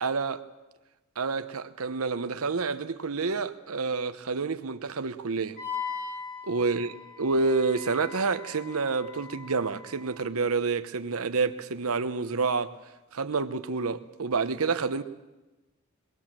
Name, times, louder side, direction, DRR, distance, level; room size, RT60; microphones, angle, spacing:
voice 1, 0.0-0.4 1.2-5.6 6.4-6.9 7.2-12.7 13.1-15.0, right 4 dB, 75° right, 0.8 m, -28 dB
Wind instrument woodwind instrument, 5.6-10.2, left 6 dB, 40° left, 4.0 m, -40 dB
23.0 x 18.5 x 7.5 m
head